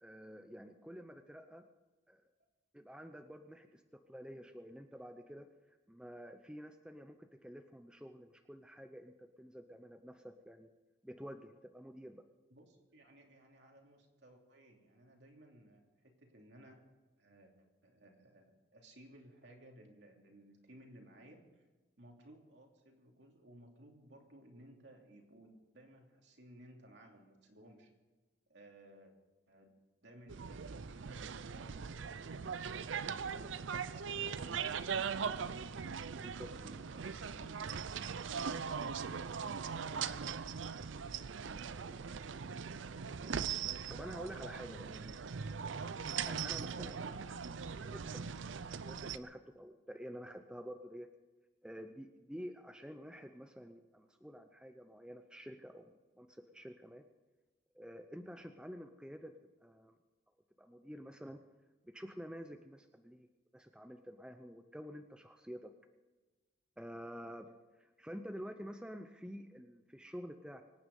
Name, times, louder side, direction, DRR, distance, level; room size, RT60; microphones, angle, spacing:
voice 1, 0.0-1.6 2.1-2.2 2.7-5.5 5.9-10.7 11.0-12.2 36.4-36.5 43.9-45.2 46.3-47.4 47.8-51.1 51.6-57.0 57.7-59.4 59.6-60.0 60.6-61.4 61.8-63.3 63.5-65.7 66.8-67.5 67.8-70.7, equal, 5° right, 6 dB, 0.6 m, -49 dB
voice 2, 12.5-16.8 17.2-21.6 22.0-27.9 28.5-29.1 29.5-29.7 30.0-37.6 38.1-42.0 43.0-43.7, right 1 dB, 65° right, 1 dB, 2.9 m, -59 dB
sound 1, 30.3-49.2, right 6 dB, 85° right, 0.6 m, -40 dB
24.5 x 9.4 x 5.4 m, 1.2 s
head